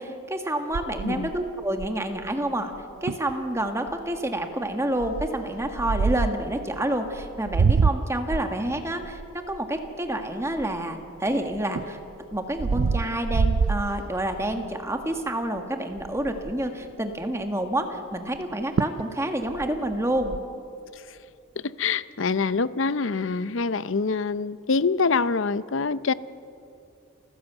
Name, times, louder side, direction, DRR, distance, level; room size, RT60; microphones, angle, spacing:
voice 1, 0.0-2.7 3.0-12.0 12.3-20.4, right 1 dB, 15° right, 5 dB, 1.7 m, -28 dB
sound 1, 0.7-2.2 2.7-2.8 3.1-3.3 3.9-4.2 5.0-6.5 7.1-11.0 11.5-14.6 15.0-15.3 15.6-15.7 15.9-16.7 18.4-18.5 18.8-19.1 19.4-20.4, right 5 dB, 70° right, 0.4 m, -26 dB
voice 2, 21.6-26.1, left 4 dB, 65° left, 16 dB, 0.6 m, -25 dB
29.0 x 15.0 x 8.1 m, 2.6 s
head